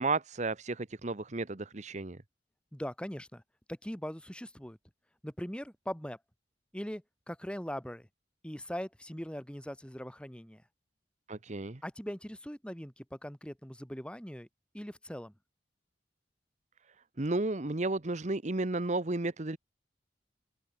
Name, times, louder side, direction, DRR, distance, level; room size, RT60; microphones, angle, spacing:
voice 1, 0.0-2.2 11.3-11.8 17.2-19.6, right 2 dB, 40° right, 1.1 m, -33 dB
voice 2, 2.7-3.4 3.7-4.8 5.2-6.2 6.7-8.1 8.4-10.6 11.8-14.5 14.7-15.3, equal, 5° left, 2.2 m, -41 dB
head